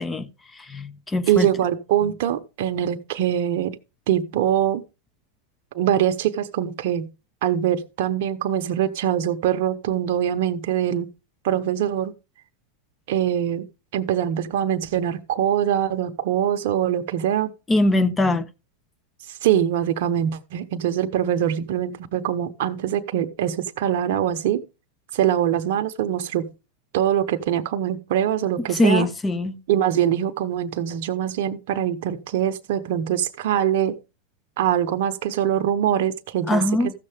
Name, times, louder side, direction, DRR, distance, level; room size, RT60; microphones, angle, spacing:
voice 1, 0.0-1.5 17.7-18.5 28.7-29.6 36.5-36.9, left 2 dB, 15° left, 0.9 m, -22 dB
voice 2, 1.3-3.8 4.1-4.8 5.7-7.1 7.4-11.1 11.4-12.1 13.1-13.7 13.9-17.5 19.3-24.6 25.1-26.5 26.9-29.1 29.7-34.0 34.6-36.9, right 10 dB, 65° right, 0.8 m, -23 dB
14.5 x 6.6 x 3.4 m
hypercardioid pair, 115°, 0 cm